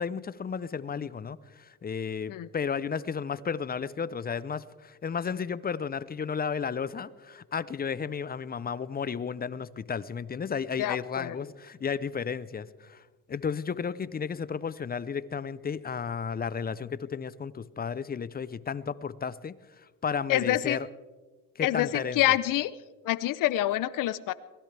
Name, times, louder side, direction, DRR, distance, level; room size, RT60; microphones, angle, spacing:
voice 1, 0.0-13.0 13.3-19.6 20.0-20.9 21.6-22.2, left 6 dB, 25° left, 18 dB, 0.7 m, -33 dB
voice 2, 10.8-11.4 20.3-20.8 21.6-22.7 23.0-24.3, left 14 dB, 60° left, 16 dB, 0.7 m, -26 dB
23.0 x 17.0 x 3.4 m, 1.3 s
supercardioid pair, 75°, 37 cm